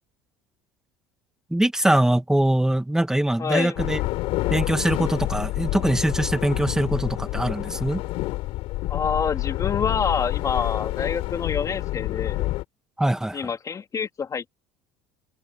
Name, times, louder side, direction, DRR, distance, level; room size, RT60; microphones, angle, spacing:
voice 1, 1.5-4.0 4.5-8.0 13.0-13.5, right 1 dB, 5° right, 2.4 m, -22 dB
voice 2, 3.4-3.8 8.9-12.5 13.3-14.5, left 6 dB, 30° left, 3.4 m, -27 dB
sound 1, 3.8-12.6, left 18 dB, 70° left, 5.2 m, -28 dB
open air
supercardioid pair, 95°, 11 cm